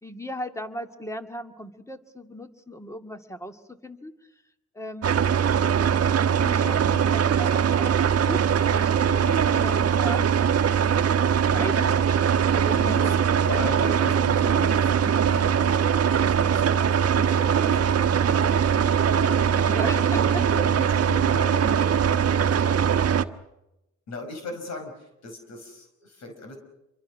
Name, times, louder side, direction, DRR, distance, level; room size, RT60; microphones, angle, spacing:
voice 1, 0.0-4.1 4.7-5.2 6.4-7.9 8.2-8.4 8.7-10.3 11.0-11.9 12.5-13.5 19.0-20.4 22.6-22.8, equal, 10° left, 7 dB, 2.2 m, -37 dB
sound 1, 5.0-23.2, right 8 dB, 55° right, 1.3 m, -21 dB
voice 2, 11.5-12.0 12.7-15.8 16.2-23.1 24.1-26.6, left 2 dB, 60° left, 5 dB, 5.4 m, -38 dB
27.5 x 24.0 x 6.4 m, 0.92 s
cardioid pair, 90°, 30 cm